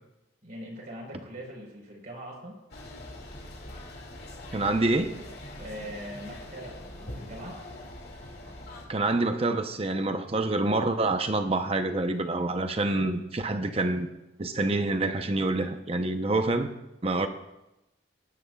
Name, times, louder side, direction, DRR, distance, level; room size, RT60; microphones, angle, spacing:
voice 1, 0.4-2.5 5.6-7.6, equal, 55° right, 4.3 m, -41 dB
sound 1, 2.7-8.9, left 1 dB, 60° left, 2.4 m, -43 dB
voice 2, 4.5-5.2 8.9-14.1 14.4-16.7 17.0-17.3, right 2 dB, 35° right, 0.8 m, -27 dB
19.0 x 10.5 x 2.4 m
head